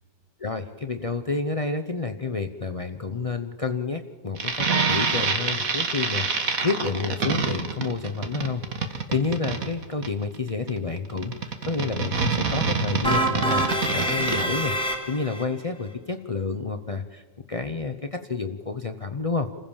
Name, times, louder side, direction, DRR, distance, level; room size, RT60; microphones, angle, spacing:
voice 1, 0.4-14.8 15.1-17.2 17.5-19.5, left 4 dB, 60° left, 7 dB, 0.3 m, -29 dB
sound 1, 4.4-14.4, right 5 dB, 50° right, 1.9 m, -26 dB
sound 2, 13.0-15.4, right 1 dB, 5° left, 2.4 m, -25 dB
27.5 x 15.5 x 7.3 m, 1.4 s
omnidirectional pair, 2.0 m